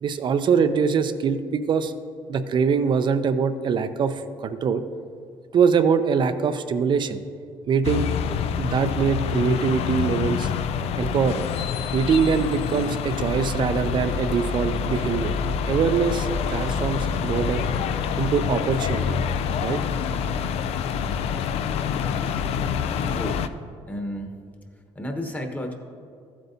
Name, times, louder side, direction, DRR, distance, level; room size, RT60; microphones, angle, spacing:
voice 1, 0.0-1.9 2.3-4.8 5.5-7.2 7.7-8.1 8.6-10.5 11.0-11.5 11.9-15.4 15.7-17.7 18.2-19.2 19.6-19.8, right 6 dB, 45° right, 9 dB, 0.5 m, -23 dB
sound 1, 7.8-23.5, left 7 dB, 70° left, 0.4 m, -26 dB
voice 2, 23.1-23.4 23.9-24.3 24.9-25.7, equal, 15° left, 4 dB, 1.1 m, -31 dB
14.0 x 7.8 x 2.7 m, 2.3 s
cardioid pair, 100°, 11 cm